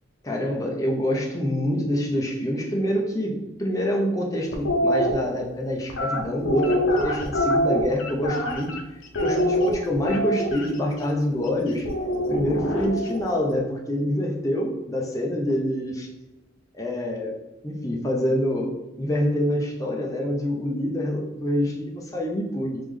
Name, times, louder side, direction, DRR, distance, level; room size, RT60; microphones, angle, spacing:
voice 1, 0.2-8.8 9.2-11.9 12.3-16.1 16.7-17.4 17.6-22.8, equal, 15° left, -1 dB, 0.6 m, -26 dB
sound 1, 4.5-5.1 5.9-8.8 9.1-10.7 11.8-13.2, equal, 80° left, 0.6 m, -24 dB
3.4 x 3.1 x 3.6 m, 1.0 s
head